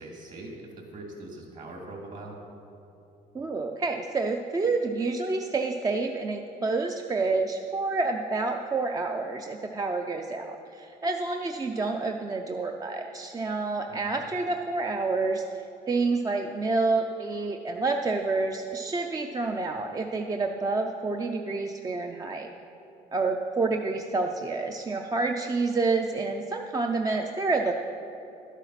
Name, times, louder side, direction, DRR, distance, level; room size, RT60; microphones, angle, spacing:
voice 1, 0.0-2.4 13.9-14.2, right 2 dB, 50° right, 0 dB, 2.6 m, -42 dB
voice 2, 3.3-22.5 23.1-27.7, right 3 dB, 20° right, 3 dB, 0.5 m, -28 dB
11.5 x 8.2 x 5.8 m, 3.0 s
cardioid pair, 110°, 17 cm